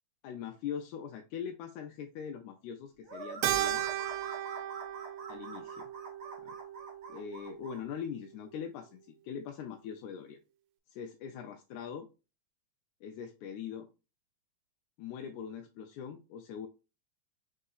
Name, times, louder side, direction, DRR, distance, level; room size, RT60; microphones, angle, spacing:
voice 1, 0.2-3.8 5.3-5.9 6.4-6.5 7.1-10.4 10.9-12.1 13.0-13.9 15.0-16.7, left 8 dB, 90° left, 4 dB, 2.0 m, -42 dB
sound 1, 3.1-7.8, right 3 dB, 55° right, 1.2 m, -46 dB
Keyboard (musical), 3.4-8.0, right 12 dB, 80° right, 1.5 m, -36 dB
5.3 x 3.7 x 2.3 m, 0.30 s
omnidirectional pair, 3.3 m